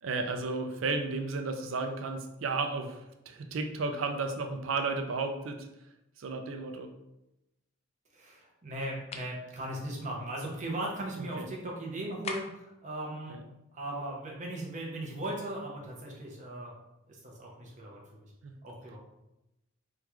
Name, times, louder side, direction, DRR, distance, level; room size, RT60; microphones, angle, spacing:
voice 1, 0.0-3.0 3.3-5.7 6.2-6.9 11.2-11.4 13.3-13.4 18.4-18.5, right 3 dB, 75° right, 6 dB, 0.4 m, -33 dB
voice 2, 8.1-13.4 13.7-16.7 17.1-18.3 18.6-19.0, right 1 dB, 40° right, -2 dB, 0.8 m, -38 dB
sound 1, 9.1-9.4 12.2-12.7, left 3 dB, 30° left, 0.3 m, -39 dB
3.6 x 2.3 x 3.0 m, 0.91 s
head